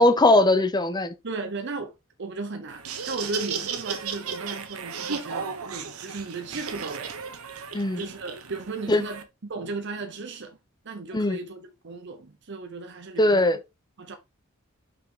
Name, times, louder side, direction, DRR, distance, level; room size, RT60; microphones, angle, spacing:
voice 1, 0.0-1.1 7.7-8.0 8.9-9.0 11.1-11.4 13.2-13.6, left 1 dB, 20° left, 0.8 m, -20 dB
voice 2, 1.2-1.9 2.2-7.1 7.9-10.6 10.8-13.5 14.0-14.2, right 3 dB, 55° right, 0.8 m, -36 dB
Laughter, 2.7-9.2, right 5 dB, 85° right, 1.2 m, -34 dB
5.9 x 5.7 x 3.8 m
head